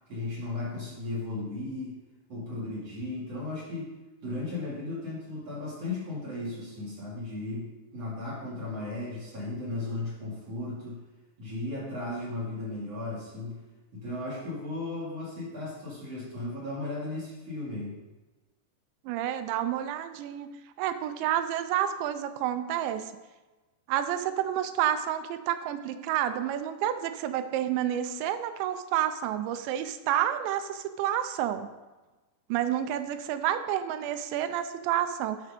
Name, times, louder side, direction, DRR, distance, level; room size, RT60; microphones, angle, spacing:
voice 1, 0.1-1.9 2.3-3.9 4.2-11.0 11.4-13.6 13.9-18.0, left 2 dB, 40° right, -8 dB, 3.6 m, -35 dB
voice 2, 19.1-20.5 20.8-23.1 23.9-31.7 32.5-35.4, right 11 dB, 85° right, 10 dB, 2.9 m, -29 dB
11.5 x 5.1 x 5.2 m, 1.2 s
omnidirectional pair, 5.1 m